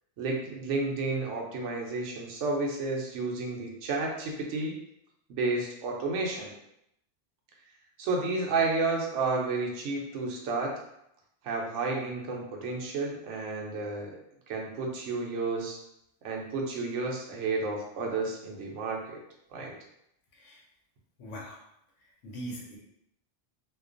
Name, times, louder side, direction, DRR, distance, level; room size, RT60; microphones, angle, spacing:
voice 1, 0.2-4.7 5.3-6.5 8.0-10.7 11.4-14.2 14.5-15.8 16.2-19.2 19.5-19.7, right 3 dB, 90° right, -1 dB, 0.9 m, -31 dB
voice 2, 20.3-20.6 21.2-21.6 22.0-22.8, right 1 dB, 85° left, -2 dB, 0.9 m, -41 dB
2.4 x 2.2 x 2.4 m, 0.77 s
omnidirectional pair, 1.2 m